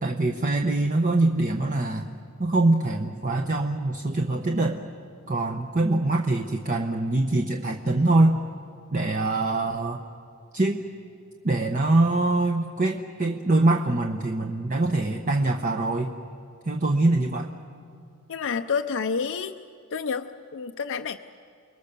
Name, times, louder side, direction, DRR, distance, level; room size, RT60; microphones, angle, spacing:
voice 1, 0.0-2.1 2.4-4.8 5.3-8.4 8.9-10.0 10.5-10.8 11.4-16.1 16.6-17.5, right 2 dB, 35° right, 3 dB, 1.0 m, -23 dB
voice 2, 18.3-19.5 19.9-21.2, left 5 dB, 60° left, 6 dB, 0.6 m, -29 dB
29.5 x 22.0 x 6.8 m, 2.3 s
head